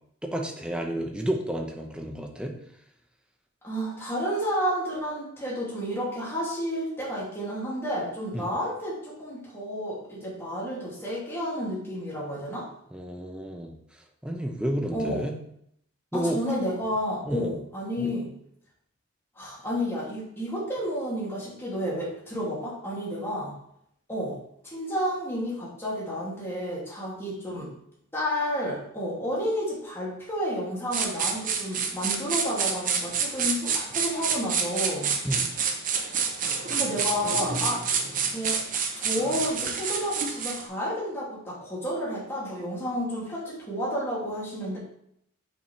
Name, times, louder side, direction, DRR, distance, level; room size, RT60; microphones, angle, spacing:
voice 1, 0.2-2.6 8.3-8.5 12.9-13.7 14.2-15.4 16.1-16.4 17.3-17.5 18.0-18.2 35.2-35.5, right 1 dB, 5° right, 2 dB, 0.7 m, -31 dB
voice 2, 3.6-12.7 14.9-15.3 16.1-18.3 19.4-23.5 24.1-24.4 24.6-27.7 28.1-35.1 36.7-37.8 38.2-38.6 39.0-44.8, equal, 10° left, -7 dB, 2.3 m, -31 dB
sound 1, 30.9-40.7, right 6 dB, 40° right, 0.7 m, -28 dB
7.2 x 5.8 x 3.2 m, 0.72 s
head